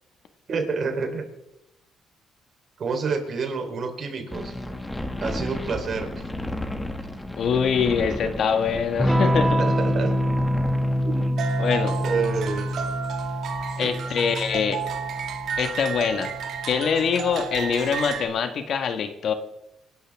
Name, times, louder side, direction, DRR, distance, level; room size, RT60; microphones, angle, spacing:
voice 1, 0.5-1.2 2.8-4.5 5.2-6.2 9.6-10.2 11.0-11.4 12.0-12.7 13.8-13.9, right 5 dB, 50° right, 4 dB, 3.6 m, -28 dB
sound 1, 4.3-11.3, left 1 dB, 10° left, 1.8 m, -33 dB
voice 2, 7.4-9.6 11.6-12.0 13.8-14.8 15.6-16.3 16.7-19.3, left 6 dB, 60° left, 8 dB, 1.5 m, -24 dB
Electric guitar / Strum, 9.0-17.3, equal, 10° right, 2.0 m, -26 dB
sound 2, 11.4-18.3, right 7 dB, 65° right, 2.4 m, -32 dB
26.0 x 12.0 x 3.5 m, 0.88 s
cardioid pair, 100°, 0 cm